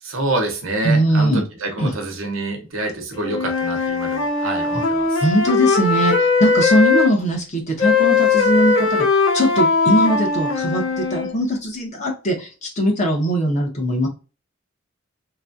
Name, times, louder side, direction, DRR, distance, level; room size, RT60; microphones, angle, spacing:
voice 1, 0.0-5.2, right 2 dB, 85° right, 0.9 m, -27 dB
voice 2, 0.8-1.4 1.8-1.9 5.2-14.1, right 1 dB, 35° left, 1.1 m, -20 dB
Wind instrument woodwind instrument, 3.2-7.1 7.8-11.3, left 4 dB, 85° left, 1.2 m, -19 dB
3.0 x 2.4 x 2.5 m
head